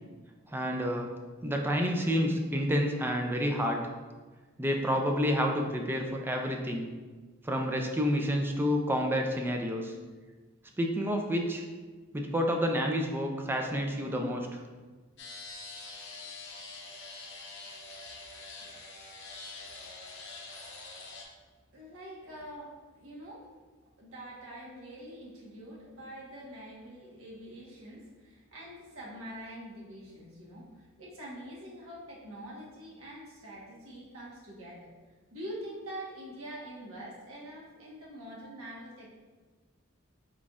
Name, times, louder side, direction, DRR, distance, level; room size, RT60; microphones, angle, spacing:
voice 1, 0.5-1.1 1.4-3.8 4.6-6.9 7.4-9.9 10.8-11.6 12.1-14.6, equal, 10° right, 2 dB, 0.3 m, -29 dB
sound 1, 15.2-21.2, left 3 dB, 60° left, 0.8 m, -45 dB
voice 2, 21.7-23.5 24.0-34.9 35.3-39.1, equal, 85° right, -4 dB, 1.2 m, -45 dB
4.4 x 4.1 x 2.4 m, 1.3 s
head